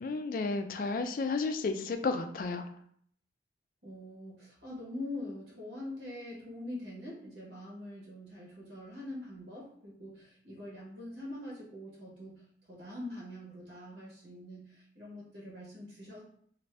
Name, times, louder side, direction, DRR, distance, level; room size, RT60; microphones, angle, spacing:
voice 1, 0.0-2.7, left 4 dB, 50° left, 7 dB, 0.3 m, -32 dB
voice 2, 3.8-16.2, left 1 dB, 70° right, -4 dB, 1.0 m, -44 dB
2.6 x 2.5 x 3.2 m, 0.62 s
head